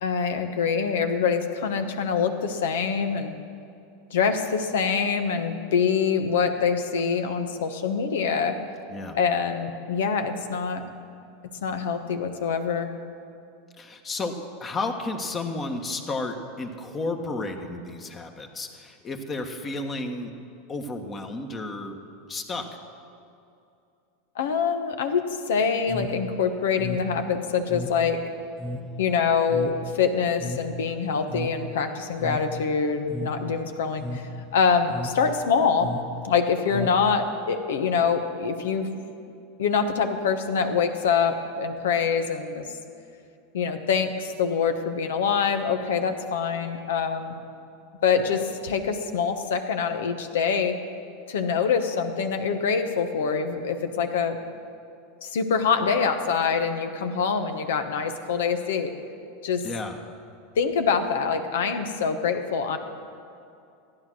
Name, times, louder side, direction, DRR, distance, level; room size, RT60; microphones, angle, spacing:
voice 1, 0.0-3.4 4.1-8.5 9.1-10.8 11.6-12.9 24.3-25.2 25.5-28.2 29.0-35.9 36.2-38.9 39.6-42.7 43.5-47.3 48.0-50.8 51.3-54.4 55.2-58.9 59.4-59.6 60.5-62.8, left 6 dB, 75° left, 7 dB, 1.1 m, -25 dB
voice 2, 13.8-20.3 20.7-22.0 22.3-22.7 59.6-60.0, left 2 dB, 30° left, 4 dB, 1.4 m, -32 dB
sound 1, 25.8-37.5, left 1 dB, ahead, 0.9 m, -36 dB
15.0 x 9.8 x 6.2 m, 2.5 s
hypercardioid pair, 100°, 0 cm